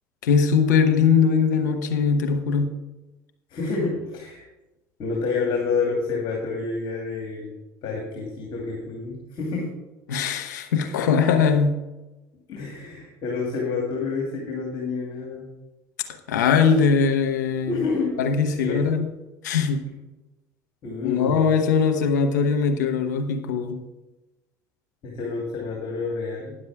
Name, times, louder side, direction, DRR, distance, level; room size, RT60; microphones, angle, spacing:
voice 1, 0.2-2.7 10.1-11.8 16.3-17.8 18.2-19.1 19.4-19.8 21.0-23.8, left 6 dB, 85° left, 7 dB, 1.0 m, -21 dB
voice 2, 3.5-4.5 5.0-7.5 7.8-9.7 12.5-15.5 17.7-18.2 18.6-19.0 20.8-21.5 25.0-26.6, left 4 dB, 60° left, -1 dB, 2.6 m, -28 dB
10.0 x 7.4 x 4.8 m, 1.0 s
hypercardioid pair, 70°, 9 cm